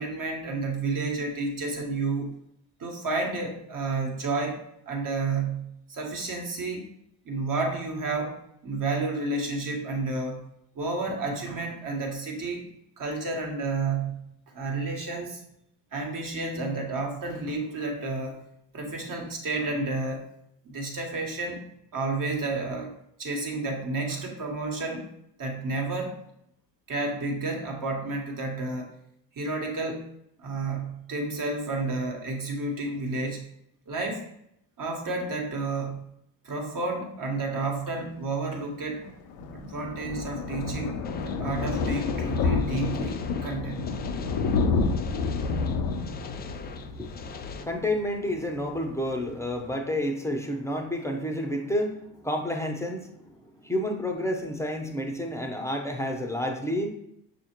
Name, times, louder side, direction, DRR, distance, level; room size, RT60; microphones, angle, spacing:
voice 1, 0.0-2.3 2.8-6.9 7.2-10.4 10.7-12.7 13.0-14.2 14.5-15.4 15.9-18.4 18.7-20.3 20.6-21.6 21.9-25.1 25.4-26.2 26.9-28.9 29.3-30.0 30.4-33.5 33.9-34.2 34.8-36.0 36.4-39.0 39.5-41.0 41.2-43.8, right 3 dB, 40° right, 1 dB, 1.3 m, -31 dB
Thunder, 39.0-48.4 48.7-49.0 49.3-49.4 49.6-49.7, left 4 dB, 70° left, 0.7 m, -29 dB
sound 1, 41.0-47.6, left 6 dB, 25° left, 0.3 m, -44 dB
voice 2, 46.6-53.1 53.6-56.9, left 1 dB, 5° left, 2 dB, 0.7 m, -30 dB
6.2 x 2.5 x 2.9 m, 0.74 s
hypercardioid pair, 60°, 50 cm